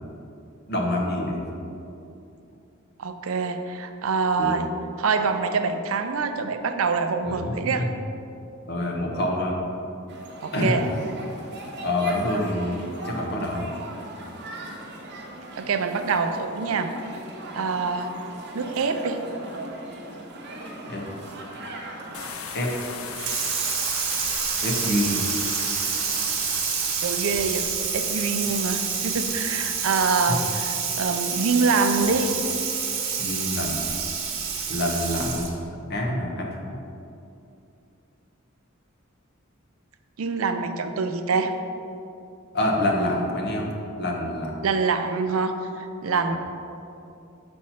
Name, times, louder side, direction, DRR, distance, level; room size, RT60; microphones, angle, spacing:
voice 1, 0.7-1.4 4.4-4.5 7.2-7.9 8.7-9.6 10.5-10.8 11.8-13.7 20.8-21.0 22.5-22.7 24.6-25.3 28.5-28.6 30.3-30.4 33.2-33.8 34.7-35.6 35.9-36.6 42.5-43.7 44.0-44.5 46.3-46.4, left 1 dB, 50° left, 0 dB, 1.1 m, -26 dB
voice 2, 3.0-4.7 5.0-7.9 10.4-10.8 15.6-16.9 17.5-18.1 18.5-19.2 27.0-32.3 40.2-41.5 44.6-46.4, right 4 dB, 75° right, 8 dB, 0.5 m, -25 dB
sound 1, 10.1-22.3, right 1 dB, 55° right, 1.0 m, -39 dB
sound 2, 22.1-30.3, left 5 dB, 80° left, 0.6 m, -38 dB
Water tap faucet / Sink (filling or washing), 23.1-35.6, right 6 dB, 90° right, 1.2 m, -28 dB
6.3 x 4.4 x 5.7 m, 2.7 s
head